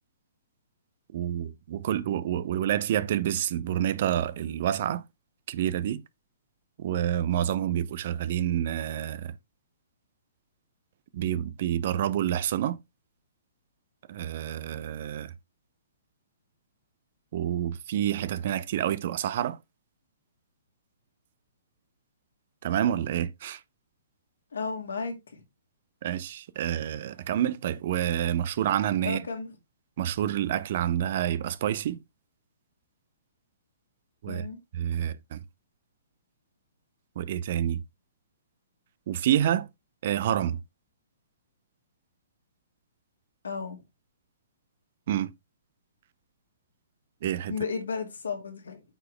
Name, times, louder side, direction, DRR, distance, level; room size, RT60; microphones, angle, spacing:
voice 1, 1.1-5.0 5.5-6.0 6.8-9.3 11.1-12.8 14.1-15.3 17.3-19.6 22.6-23.6 26.0-29.3 30.0-32.0 34.2-34.5 34.7-35.4 37.2-37.8 39.1-39.7 40.0-40.6 45.1-45.3 47.2-47.5, right 11 dB, 45° right, 0.6 m, -28 dB
voice 2, 24.5-25.4 29.0-29.5 34.3-34.6 43.4-43.8 47.5-48.8, left 5 dB, 70° left, 2.2 m, -33 dB
8.9 x 4.8 x 3.2 m
figure-of-eight pair, 120°, 0 cm